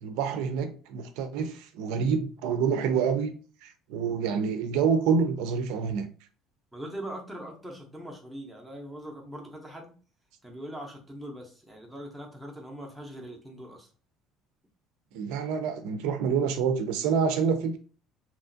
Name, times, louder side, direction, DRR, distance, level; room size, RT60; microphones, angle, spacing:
voice 1, 0.0-6.1 15.1-17.8, right 6 dB, 85° right, 0.4 m, -27 dB
voice 2, 6.7-9.9 10.4-13.9, right 1 dB, ahead, 0.5 m, -41 dB
2.9 x 2.4 x 2.5 m
cardioid pair, 180°, 0 cm